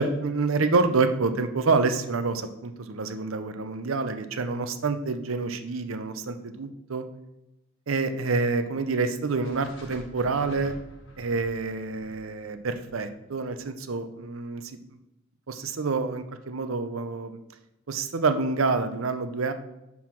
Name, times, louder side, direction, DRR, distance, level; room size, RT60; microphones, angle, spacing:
voice 1, 0.0-7.0 7.9-10.7 11.2-14.6 15.5-17.4 17.9-19.5, right 4 dB, 90° right, 9 dB, 0.7 m, -27 dB
sound 1, 9.4-13.6, equal, 70° left, 1.4 m, -47 dB
5.5 x 4.7 x 5.9 m, 0.93 s
head